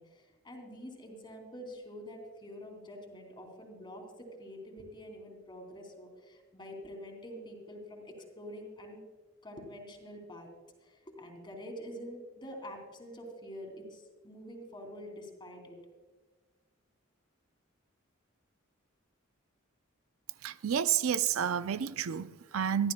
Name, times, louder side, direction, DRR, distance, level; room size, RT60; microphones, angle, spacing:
voice 1, 0.0-9.0 9.4-10.5 10.8-15.8, equal, 25° left, 2.9 m, -46 dB
voice 2, 20.4-22.9, right 8 dB, 80° right, 0.5 m, -30 dB
23.0 x 14.0 x 2.3 m
head